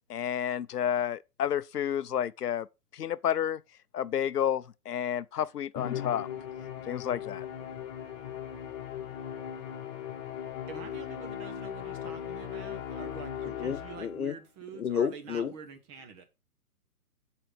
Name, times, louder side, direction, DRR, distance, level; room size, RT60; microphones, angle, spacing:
voice 1, 0.1-2.7 3.0-3.6 3.9-6.3 6.9-7.4, left 9 dB, 90° left, 0.6 m, -30 dB
Musical instrument, 5.8-14.3, left 9 dB, 30° left, 1.5 m, -38 dB
voice 2, 10.7-16.2, right 6 dB, 20° right, 1.1 m, -46 dB
voice 3, 13.5-14.3 14.7-15.5, left 7 dB, 70° left, 1.1 m, -31 dB
7.7 x 4.1 x 6.0 m
hypercardioid pair, 145°, 45 cm